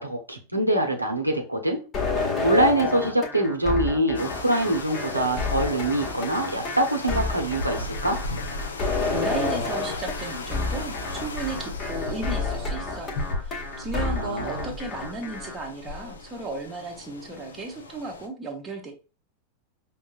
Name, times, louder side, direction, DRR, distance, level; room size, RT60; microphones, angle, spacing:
voice 1, 0.0-1.8 2.2-8.2 13.9-14.7, right 1 dB, 85° right, 2 dB, 0.7 m, -24 dB
sound 1, 1.9-15.5, left 3 dB, 25° left, 0.9 m, -30 dB
sound 2, 4.1-18.3, left 2 dB, 65° left, 0.6 m, -36 dB
voice 2, 9.1-18.9, right 2 dB, 20° right, 1 dB, 0.9 m, -34 dB
5.4 x 2.0 x 2.4 m, 0.33 s
figure-of-eight pair, 90°, 0 cm